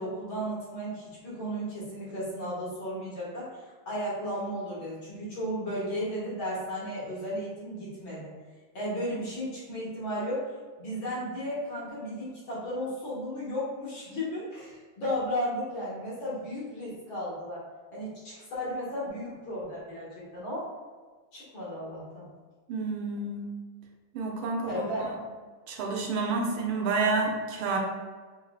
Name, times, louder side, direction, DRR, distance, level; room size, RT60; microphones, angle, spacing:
voice 1, 0.0-8.3 8.7-10.5 10.8-17.6 17.9-20.7 21.3-22.3 24.7-25.2, equal, 65° left, -7 dB, 2.3 m, -34 dB
voice 2, 22.7-23.5 24.1-24.8 25.7-27.8, right 3 dB, 85° right, 0 dB, 1.6 m, -29 dB
5.5 x 3.3 x 2.3 m, 1.4 s
omnidirectional pair, 2.3 m